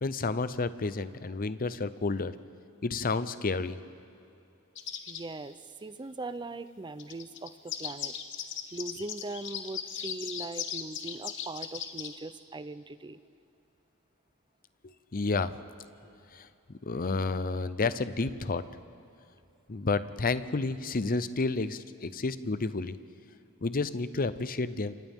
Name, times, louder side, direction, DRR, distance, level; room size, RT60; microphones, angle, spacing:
voice 1, 0.0-2.3 2.8-3.8 15.1-15.5 16.3-16.5 16.9-18.6 19.7-23.0 23.6-24.9, left 3 dB, 40° left, 13 dB, 0.7 m, -30 dB
sound 1, 4.8-5.2 7.0-12.2, left 8 dB, 60° left, 1.3 m, -38 dB
voice 2, 5.1-8.1 8.7-13.2, right 2 dB, 20° right, 13 dB, 0.6 m, -40 dB
29.0 x 26.0 x 3.7 m, 2.7 s
head